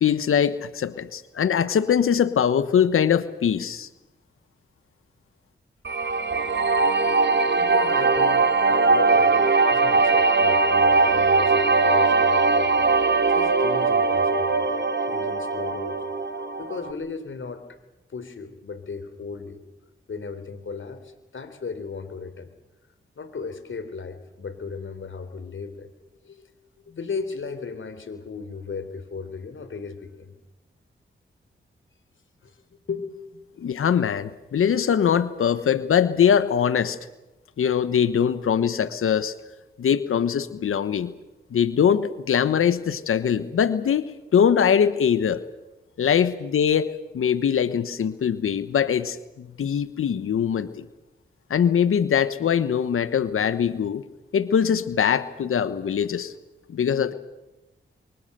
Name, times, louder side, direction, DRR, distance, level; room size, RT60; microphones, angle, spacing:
voice 1, 0.0-3.9 33.6-37.0 37.6-39.3 39.8-41.1 41.5-45.4 46.0-50.9 51.5-54.0 54.3-56.3 56.7-57.1, left 8 dB, 80° left, 14 dB, 1.2 m, -22 dB
sound 1, 5.9-16.9, right 4 dB, 60° right, 2.3 m, -20 dB
voice 2, 7.5-12.7 13.3-14.6 15.1-16.0 16.6-17.8 18.1-19.6 20.1-22.5 23.2-25.9 26.2-26.4 26.9-30.4 32.4-33.7, left 5 dB, 65° left, 11 dB, 3.6 m, -36 dB
24.0 x 23.0 x 6.8 m, 1.0 s
cardioid pair, 40°, 21 cm